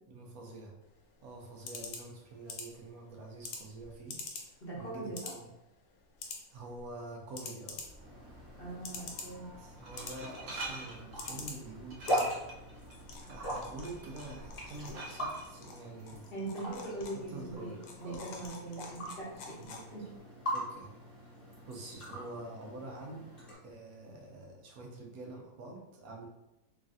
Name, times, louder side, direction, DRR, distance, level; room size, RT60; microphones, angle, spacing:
voice 1, 0.1-0.8 1.2-4.2 4.8-5.5 6.5-7.8 9.6-12.4 13.2-16.2 17.1-18.4 19.5-19.9 20.5-20.9 21.7-23.3 23.6-26.3, right 2 dB, 80° right, 0 dB, 1.1 m, -46 dB
sound 1, 0.8-20.2, left 4 dB, 80° left, 1.1 m, -48 dB
voice 2, 4.6-5.3 8.6-9.5 16.3-19.5 19.9-20.1, right 2 dB, 50° left, -6 dB, 0.9 m, -41 dB
Glass, 7.7-15.5, right 2 dB, 60° right, 0.7 m, -47 dB
sound 2, 8.0-23.6, equal, 25° left, 1.0 m, -41 dB
3.2 x 2.3 x 2.6 m, 0.93 s
omnidirectional pair, 1.5 m